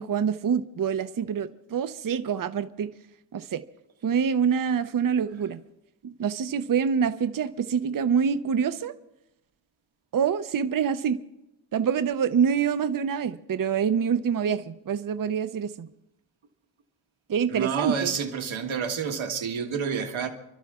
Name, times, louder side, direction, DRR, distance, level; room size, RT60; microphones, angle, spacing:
voice 1, 0.0-2.9 3.3-3.6 4.0-5.6 6.2-8.9 10.1-11.2 11.7-15.9 17.3-18.1, right 7 dB, 45° right, 0.6 m, -26 dB
voice 2, 17.5-20.3, right 6 dB, 80° right, 1.6 m, -29 dB
30.0 x 12.0 x 3.6 m
wide cardioid pair, 130°, 46 cm